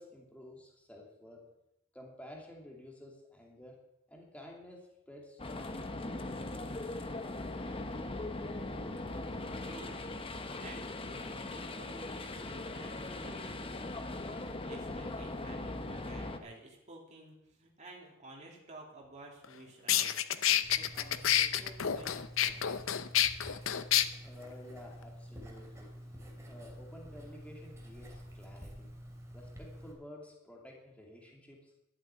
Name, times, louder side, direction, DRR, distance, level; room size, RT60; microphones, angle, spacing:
voice 1, 0.0-1.4 1.9-3.7 4.1-5.9 24.2-25.9 26.5-28.1 28.3-28.9 29.3-31.7, left 1 dB, 5° left, -1 dB, 2.6 m, -52 dB
sound 1, 5.4-16.4, left 2 dB, 25° left, 1.0 m, -40 dB
voice 2, 9.6-10.0 10.3-22.7, right 1 dB, 35° right, -2 dB, 2.9 m, -53 dB
sound 2, 19.4-19.5 19.9-24.0, left 11 dB, 70° left, 0.7 m, -28 dB
Writing, 20.6-29.9, equal, 15° right, 2.9 m, -49 dB
12.5 x 8.1 x 8.9 m, 0.87 s
head